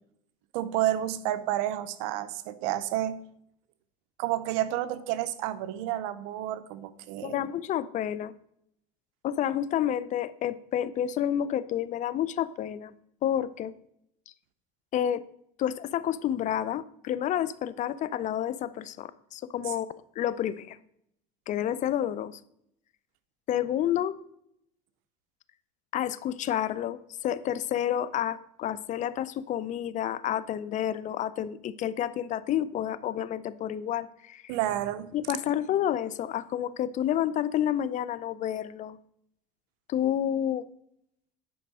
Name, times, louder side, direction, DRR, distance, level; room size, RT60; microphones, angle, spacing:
voice 1, 0.5-3.2 4.2-7.4 34.5-35.1, right 13 dB, 85° right, 13 dB, 0.7 m, -30 dB
voice 2, 7.2-8.3 9.2-12.9 13.2-13.7 14.9-15.2 15.6-19.9 20.2-20.8 21.5-22.4 23.5-24.1 25.9-34.4 35.1-39.0 39.9-40.7, left 10 dB, 45° left, 16 dB, 0.5 m, -29 dB
9.3 x 5.3 x 4.8 m, 0.73 s
supercardioid pair, 105°, 17 cm